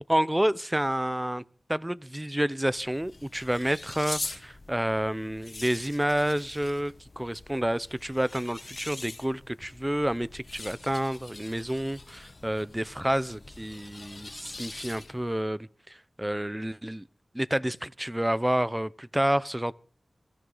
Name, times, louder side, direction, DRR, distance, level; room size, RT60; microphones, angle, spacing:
voice 1, 0.1-1.4 1.7-17.1 17.3-19.7, right 1 dB, 15° right, 0.7 m, -29 dB
sound 1, 2.6-15.3, left 2 dB, 50° left, 1.3 m, -43 dB
21.5 x 14.0 x 4.0 m
wide cardioid pair, 55°, 0 cm